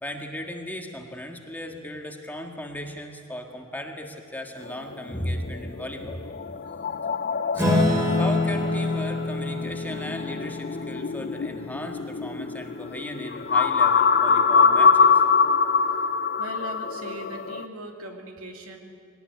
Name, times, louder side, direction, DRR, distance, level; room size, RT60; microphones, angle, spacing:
voice 1, 0.0-6.2 7.5-15.1, left 1 dB, 10° left, 2 dB, 1.8 m, -36 dB
sound 1, 4.7-17.6, left 5 dB, 45° left, 0.7 m, -24 dB
Acoustic guitar / Strum, 7.6-12.4, left 2 dB, 15° right, 3.2 m, -26 dB
voice 2, 16.4-18.8, equal, 70° right, 2 dB, 2.9 m, -39 dB
22.5 x 19.0 x 9.5 m, 2.3 s
head